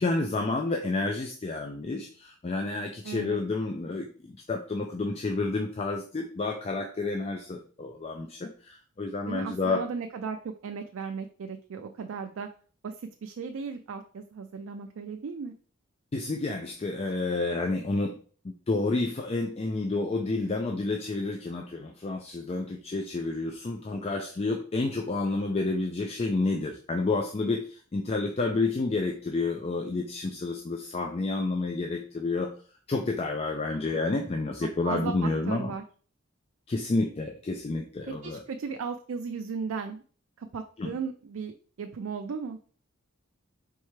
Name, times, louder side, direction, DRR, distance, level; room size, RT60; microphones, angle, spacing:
voice 1, 0.0-9.8 16.1-18.2 18.4-32.5 32.9-35.7 36.7-38.4 40.8-40.9, left 3 dB, 30° left, 3 dB, 0.4 m, -30 dB
voice 2, 3.0-3.4 9.3-10.4 10.6-12.5 12.8-15.5 34.8-35.8 38.2-40.0 40.4-42.6, right 5 dB, 70° right, 5 dB, 0.4 m, -36 dB
4.5 x 3.2 x 3.2 m, 0.42 s
head